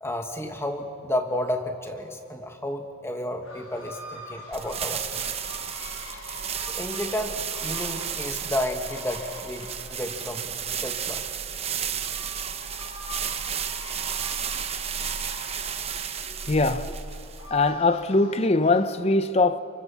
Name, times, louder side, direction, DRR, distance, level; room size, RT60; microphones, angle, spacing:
voice 1, 0.0-5.2 6.7-10.5 10.8-11.2, left 1 dB, 10° left, 1.6 m, -31 dB
sound 1, 3.4-19.0, left 2 dB, 75° left, 7.0 m, -45 dB
sound 2, 4.5-17.7, right 8 dB, 30° right, 0.9 m, -33 dB
voice 2, 16.5-17.0 17.5-19.6, left 2 dB, 30° left, 0.8 m, -22 dB
29.0 x 24.5 x 7.1 m
head